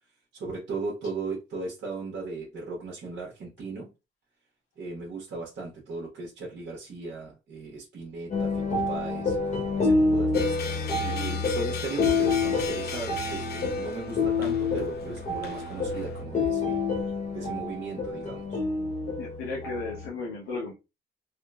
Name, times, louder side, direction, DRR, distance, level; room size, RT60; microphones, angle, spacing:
voice 1, 0.3-3.9 4.8-9.4 9.8-16.8 17.3-18.6, right 3 dB, 65° right, 1.0 m, -37 dB
sound 1, 8.3-20.1, left 3 dB, 35° left, 0.8 m, -28 dB
sound 2, 10.3-16.2, left 6 dB, 55° left, 0.5 m, -39 dB
voice 2, 19.2-20.7, left 3 dB, 90° left, 0.8 m, -34 dB
3.6 x 2.0 x 2.2 m
cardioid pair, 90°, 20 cm